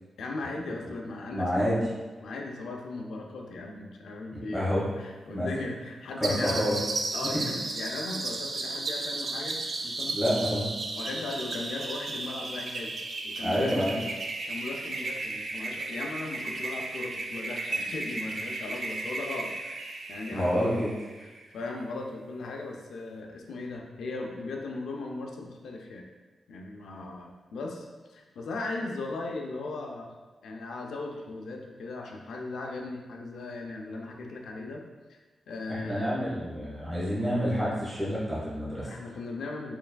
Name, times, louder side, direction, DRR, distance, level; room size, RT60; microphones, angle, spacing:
voice 1, 0.2-1.7 2.2-6.6 7.1-10.5 11.0-13.0 13.2-20.7 21.2-26.0 26.5-30.1 30.4-34.8 35.1-35.2 35.5-36.1 38.8-39.8, left 3 dB, 90° left, 1 dB, 0.5 m, -38 dB
voice 2, 1.3-1.8 4.5-4.9 5.3-5.5 6.2-6.8 7.2-7.4 10.1-10.7 13.4-13.9 20.3-20.9 35.7-38.9, equal, 5° right, -9 dB, 1.3 m, -28 dB
sound 1, 6.2-21.4, right 3 dB, 45° right, 0.4 m, -34 dB
4.4 x 3.3 x 2.3 m, 1.2 s
wide cardioid pair, 130°, 0 cm